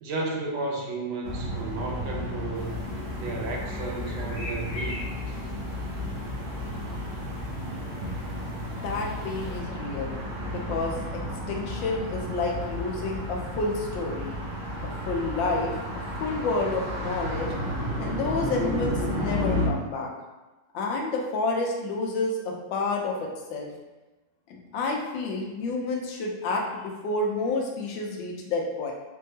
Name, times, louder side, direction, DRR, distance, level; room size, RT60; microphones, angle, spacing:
voice 1, 0.0-2.8 3.2-5.0, right 2 dB, 90° right, -1 dB, 1.6 m, -33 dB
sound 1, 1.2-19.7, left 1 dB, 70° right, 2.0 m, -32 dB
sound 2, 2.5-9.6, left 1 dB, 50° left, 1.2 m, -45 dB
voice 2, 8.7-10.1 10.5-11.2 11.5-14.4 14.8-15.7 16.2-17.5 18.0-20.1 20.7-23.7 24.5-28.9, left 3 dB, 75° left, 0 dB, 1.4 m, -29 dB
5.3 x 2.7 x 2.7 m, 1.1 s
omnidirectional pair, 2.1 m